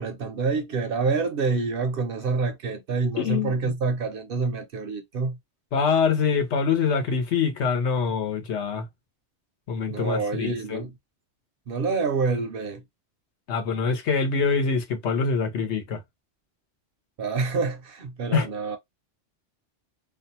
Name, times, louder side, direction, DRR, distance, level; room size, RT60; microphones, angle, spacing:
voice 1, 0.0-5.4 9.9-10.9 11.7-12.8 17.2-18.8, right 4 dB, 60° right, 0.6 m, -27 dB
voice 2, 3.2-3.5 5.7-8.8 9.7-10.8 13.5-16.0 18.3-18.5, left 5 dB, 75° left, 1.1 m, -24 dB
2.5 x 2.2 x 2.7 m
omnidirectional pair, 1.2 m